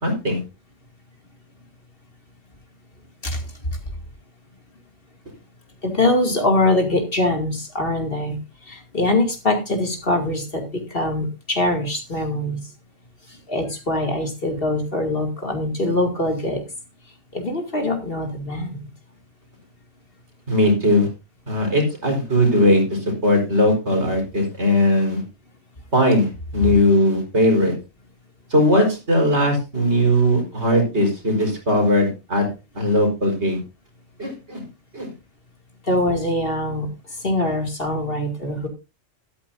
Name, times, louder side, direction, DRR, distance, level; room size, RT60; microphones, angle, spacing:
voice 1, 0.0-0.4 20.5-21.1 21.5-25.2 25.9-27.7 28.5-32.5 32.7-33.6 34.2-34.6 34.9-35.1, left 1 dB, 60° right, 2 dB, 4.9 m, -19 dB
voice 2, 5.8-12.6 13.5-16.6 17.3-18.9 35.8-36.9 37.2-38.7, left 1 dB, 45° left, 3 dB, 2.7 m, -23 dB
13.0 x 13.0 x 2.7 m, 0.28 s
omnidirectional pair, 1.3 m